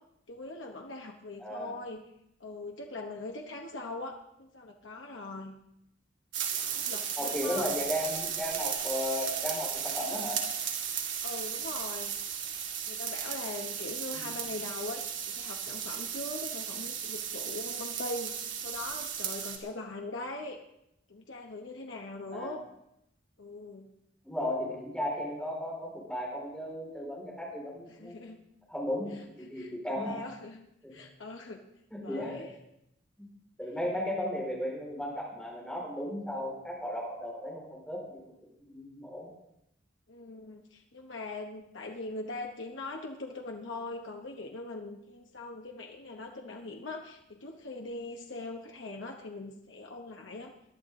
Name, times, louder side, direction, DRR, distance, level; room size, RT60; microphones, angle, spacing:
voice 1, 0.3-2.0 2.4-5.6 6.7-7.7 11.2-12.2 12.8-20.6 21.1-22.6 23.4-23.9 27.9-28.4 29.5-30.6 30.9-31.6 32.0-32.5 40.1-50.5, left 2 dB, 85° left, 1 dB, 1.2 m, -41 dB
voice 2, 1.4-1.8 7.2-10.4 14.1-14.3 22.3-22.5 24.2-28.2 28.7-30.2 30.8-30.9 31.9-32.5 33.2-33.3 33.6-38.2 38.6-39.3, left 1 dB, 5° left, -4 dB, 4.9 m, -35 dB
sound 1, 6.3-19.6, right 8 dB, 80° right, 2.4 m, -35 dB
21.0 x 11.5 x 3.8 m, 0.81 s
head